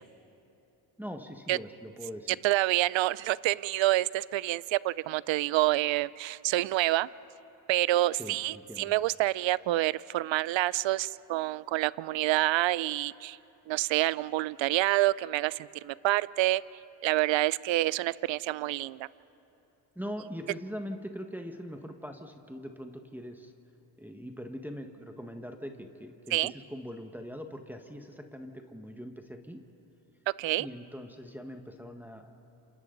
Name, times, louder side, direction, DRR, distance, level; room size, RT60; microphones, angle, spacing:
voice 1, 1.0-2.4 8.2-8.9 19.9-23.5 24.0-29.6 30.6-32.3, equal, 5° right, 4 dB, 1.6 m, -42 dB
voice 2, 2.3-7.1 7.7-13.4 13.7-16.6 17.0-19.1 26.3-26.5 30.4-30.7, right 16 dB, 65° right, 20 dB, 0.6 m, -27 dB
28.0 x 27.0 x 4.0 m, 2.9 s
supercardioid pair, 60°, 49 cm